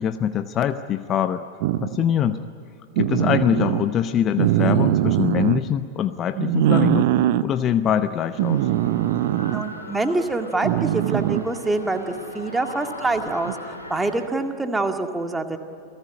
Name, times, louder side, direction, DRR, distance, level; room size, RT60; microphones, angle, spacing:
voice 1, 0.0-1.4 1.8-2.4 3.0-8.7, left 9 dB, 30° left, 11 dB, 0.8 m, -23 dB
sound 1, 1.6-2.0 3.0-3.8 4.4-5.6 6.4-7.4 8.4-9.6 10.6-11.6 13.4-13.5, right 14 dB, 50° right, 0.8 m, -21 dB
sound 2, 8.3-14.3, left 2 dB, 80° left, 4.3 m, -38 dB
voice 2, 9.5-15.6, right 2 dB, 10° right, 5 dB, 2.0 m, -25 dB
29.0 x 18.0 x 10.0 m, 2.8 s
figure-of-eight pair, 90°, 0 cm